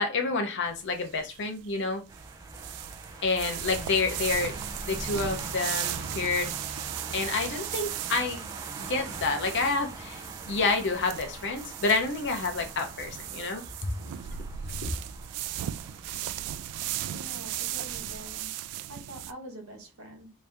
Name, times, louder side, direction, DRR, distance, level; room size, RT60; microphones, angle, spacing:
voice 1, 0.0-2.0 3.2-4.6 4.8-6.5 7.1-8.5 8.8-13.9 14.8-14.9, left 3 dB, 55° left, 0.8 m, -29 dB
walking in the grass, 0.7-19.3, right 12 dB, 90° right, 0.3 m, -37 dB
sound 1, 2.1-18.4, right 2 dB, 15° right, 0.6 m, -43 dB
voice 2, 17.0-18.5 18.9-20.3, equal, 70° right, 1.2 m, -45 dB
3.1 x 2.7 x 3.5 m
head